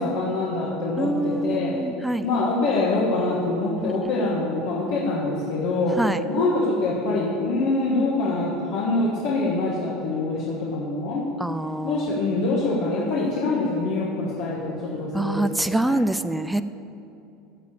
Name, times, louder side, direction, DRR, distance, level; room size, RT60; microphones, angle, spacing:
voice 1, 0.0-1.7 2.2-11.3 11.8-16.0, left 2 dB, 55° left, -5 dB, 1.8 m, -25 dB
voice 2, 1.0-2.3 3.8-4.0 6.0-6.2 11.4-12.1 15.1-16.6, right 1 dB, 5° right, 12 dB, 0.3 m, -25 dB
14.5 x 4.9 x 8.5 m, 2.7 s
cardioid pair, 165°, 0 cm